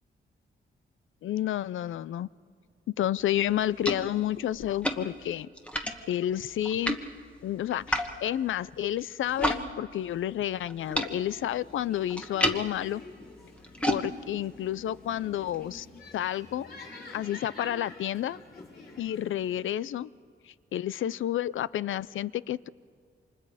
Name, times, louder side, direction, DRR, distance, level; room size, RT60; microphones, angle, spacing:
voice 1, 1.2-2.3 3.0-5.5 6.1-7.0 7.4-13.0 13.9-15.9 16.1-16.7 17.1-18.4 19.0-20.1 20.5-22.7, left 12 dB, 75° left, 19 dB, 0.5 m, -30 dB
sound 1, 3.2-9.6 9.9-15.8, equal, 5° left, 1.4 m, -35 dB
sound 2, 10.8-19.6, left 3 dB, 55° left, 7.0 m, -48 dB
29.0 x 26.5 x 4.9 m, 2.2 s
wide cardioid pair, 145°, 20 cm